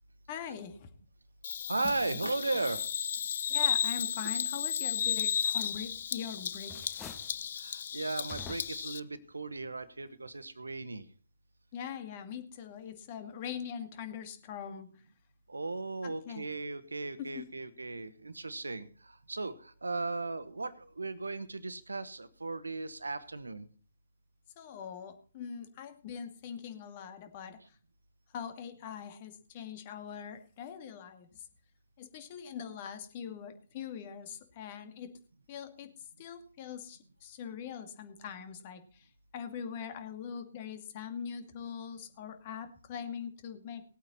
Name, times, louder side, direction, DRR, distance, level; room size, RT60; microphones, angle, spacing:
voice 1, 0.3-0.9 1.8-1.9 3.5-7.0 11.7-14.9 16.0-16.5 17.2-17.5 24.6-27.6 28.3-31.4 32.0-35.2 35.5-35.9 36.2-39.1 39.3-43.8, left 7 dB, 35° left, 8 dB, 2.4 m, -42 dB
Bird vocalization bird call bird song, 1.4-9.0, left 8 dB, 55° left, 0.6 m, -34 dB
voice 2, 1.7-2.9 5.0-5.1 7.6-11.0 15.5-18.9 19.3-23.7, right 3 dB, 80° right, 14 dB, 1.4 m, -36 dB
sound 1, 5.7-6.2 6.5-7.4 8.3-9.0, left 4 dB, 20° left, 1.7 m, -48 dB
19.5 x 8.7 x 4.2 m, 0.41 s
figure-of-eight pair, 135°, 0 cm